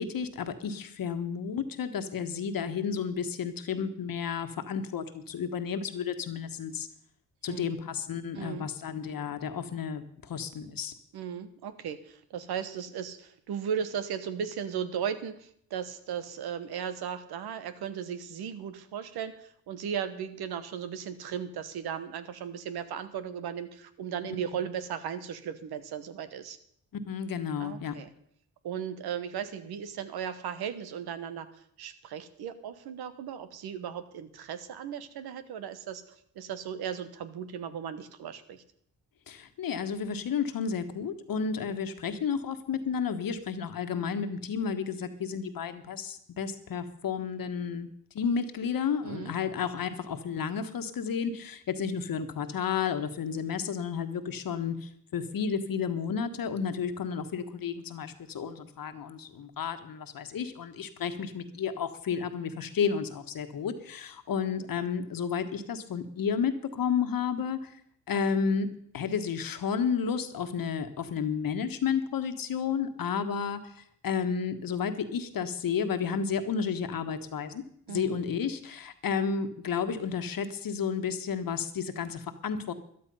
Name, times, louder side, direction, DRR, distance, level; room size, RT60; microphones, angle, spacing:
voice 1, 0.0-6.9 7.4-10.9 26.9-28.0 39.3-47.9 48.1-67.7 68.1-77.6 77.9-82.7, left 6 dB, 65° left, 9 dB, 1.5 m, -32 dB
voice 2, 8.3-8.7 11.1-26.6 27.6-28.1 28.6-36.0 36.3-38.6 49.0-49.3 77.9-78.2, right 8 dB, 80° right, 11 dB, 1.2 m, -36 dB
13.0 x 11.5 x 5.5 m, 0.66 s
supercardioid pair, 55°, 37 cm